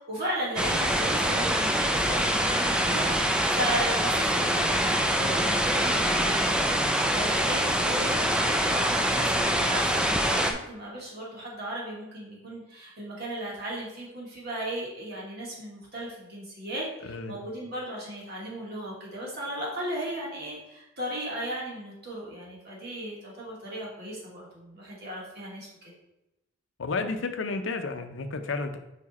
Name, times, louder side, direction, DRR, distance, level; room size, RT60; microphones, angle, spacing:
voice 1, 0.0-25.9, right 1 dB, 55° right, -5 dB, 2.3 m, -36 dB
sound 1, 0.6-10.5, equal, 5° right, 0.4 m, -25 dB
voice 2, 17.0-17.4 26.8-28.8, left 3 dB, 70° left, 8 dB, 0.6 m, -31 dB
5.1 x 4.8 x 4.2 m, 0.91 s
head